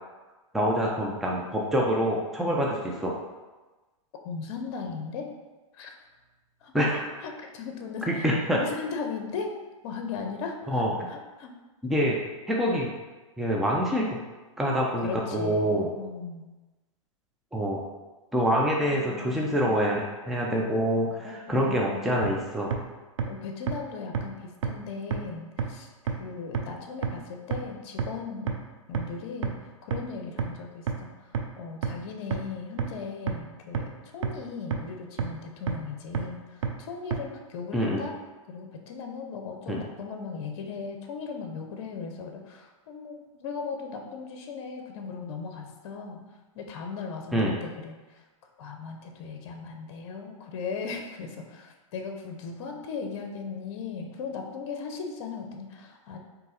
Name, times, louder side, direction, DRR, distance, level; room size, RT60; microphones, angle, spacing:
voice 1, 0.5-2.7 3.0-3.1 6.7-7.0 8.1-8.6 10.7-10.9 11.8-12.2 12.5-12.9 13.4-14.2 14.6-15.9 17.5-17.8 18.3-22.7 37.7-38.0 39.7-39.8 47.3-47.5, equal, ahead, -3 dB, 0.4 m, -26 dB
voice 2, 4.2-5.3 5.7-5.9 6.6-6.7 7.2-9.5 9.8-11.5 15.0-16.4 21.0-22.2 23.3-28.5 28.9-31.1 31.6-38.1 38.5-46.2 46.5-48.2 48.6-56.2, left 5 dB, 55° left, 3 dB, 0.7 m, -38 dB
sound 1, 22.2-22.3 22.7-22.8 23.2-23.3 23.7-23.8 24.1-24.2 24.6-24.7 25.1-25.2 25.6-25.7 26.1-26.2 26.5-26.6 27.0-27.1 27.5-27.6 28.0-28.1 28.5-28.6 28.9-29.0 29.4-29.5 29.9-30.0 30.4-30.5 30.9-31.0 31.3-31.4 31.8-31.9 32.3-32.4 32.8-32.9 33.3-33.4 33.7-33.8 34.2-34.3 34.7-34.8 35.2-35.3 35.7-35.8 36.1-36.2 36.6-36.7 37.1-37.2, right 7 dB, 70° right, 0.5 m, -26 dB
3.9 x 2.8 x 3.9 m, 1.2 s
hypercardioid pair, 120°, 17 cm